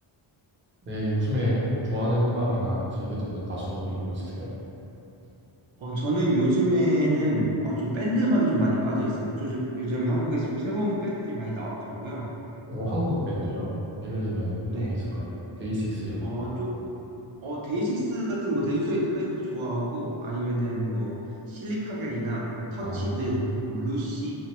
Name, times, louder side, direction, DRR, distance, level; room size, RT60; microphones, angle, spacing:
voice 1, 0.8-4.5 12.7-13.7 14.0-15.3 15.6-16.5 22.8-23.2, equal, 25° right, -7 dB, 0.4 m, -28 dB
voice 2, 5.8-12.3 14.6-15.0 16.2-16.8 17.4-21.2 21.5-24.3, right 1 dB, 70° right, -4 dB, 0.7 m, -27 dB
2.7 x 2.1 x 2.9 m, 2.9 s
wide cardioid pair, 155°, 50 cm